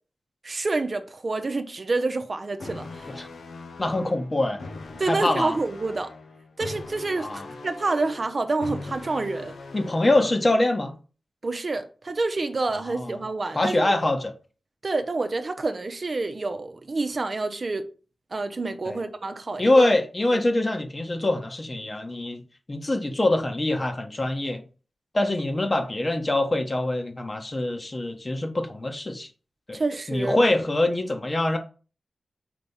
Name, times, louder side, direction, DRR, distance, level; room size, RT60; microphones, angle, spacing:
voice 1, 0.4-3.1 5.0-6.1 6.6-9.5 11.4-13.9 14.8-17.9 18.3-19.9 20.3-20.4 29.7-30.4, right 3 dB, 55° right, 0.7 m, -28 dB
sound 1, 2.6-10.6, left 3 dB, 85° left, 0.7 m, -41 dB
voice 2, 3.8-4.6 5.1-5.6 7.2-7.4 9.7-10.9 12.7-13.1 13.5-14.3 18.9-19.0 19.6-22.4 22.7-24.6 25.1-29.3 29.7-29.8 30.1-31.6, left 2 dB, 40° left, 1.3 m, -24 dB
5.1 x 3.4 x 5.5 m
cardioid pair, 40°, 0 cm